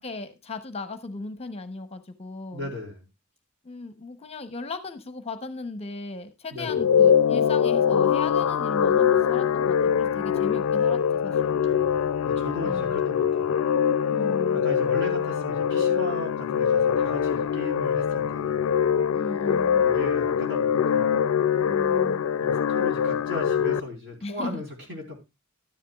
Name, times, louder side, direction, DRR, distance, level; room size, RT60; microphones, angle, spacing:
voice 1, 0.0-2.7 3.6-11.6 12.6-13.0 14.1-14.6 19.1-19.9 21.6-22.2 24.2-24.6, left 3 dB, 30° left, 9 dB, 0.8 m, -37 dB
voice 2, 2.5-3.1 6.5-6.8 11.6-13.6 14.5-18.7 19.8-21.2 22.4-25.2, left 1 dB, 55° right, 2 dB, 3.7 m, -37 dB
sound 1, 6.6-23.8, left 8 dB, 75° left, 0.4 m, -23 dB
12.5 x 10.0 x 2.3 m, 0.24 s
head